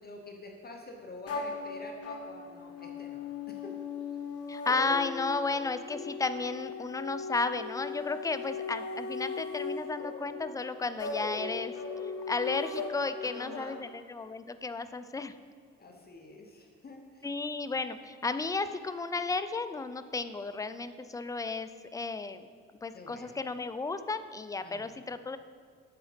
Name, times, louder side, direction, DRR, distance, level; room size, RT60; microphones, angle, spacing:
voice 1, 0.0-3.8 13.2-13.8 15.8-17.3 22.9-23.4 24.6-24.9, left 2 dB, 30° left, 1 dB, 1.0 m, -47 dB
sound 1, 1.3-13.6, left 4 dB, 50° left, 1.3 m, -38 dB
voice 2, 4.5-11.7 12.3-15.3 17.2-22.5 22.8-25.4, left 3 dB, 10° left, 11 dB, 0.3 m, -33 dB
8.1 x 4.9 x 5.0 m, 2.1 s
cardioid pair, 90°, 30 cm